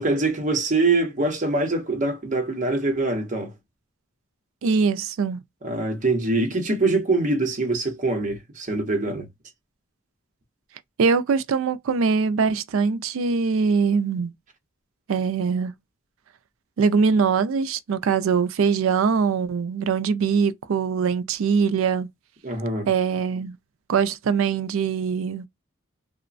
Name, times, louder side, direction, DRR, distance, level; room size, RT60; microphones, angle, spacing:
voice 1, 0.0-3.5 5.6-9.3 22.4-22.9, right 2 dB, 35° right, 0.8 m, -24 dB
voice 2, 4.6-5.4 11.0-14.3 15.1-15.7 16.8-22.1 22.9-23.6 23.9-25.5, right 5 dB, 75° right, 0.4 m, -22 dB
2.9 x 2.1 x 2.4 m
head